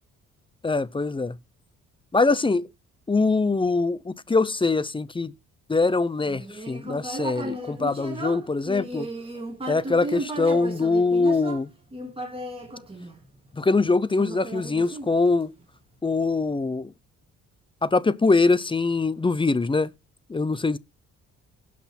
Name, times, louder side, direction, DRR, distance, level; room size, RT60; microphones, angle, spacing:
voice 1, 0.6-1.4 2.1-2.7 3.1-5.3 5.7-9.1 9.7-11.7 13.6-15.5 16.0-16.9 17.8-19.9 20.3-20.8, left 3 dB, 15° left, 0.6 m, -23 dB
Human voice, 6.2-13.6 14.2-15.6, right 2 dB, 20° right, 3.8 m, -35 dB
16.5 x 6.1 x 4.3 m
cardioid pair, 90°, 30 cm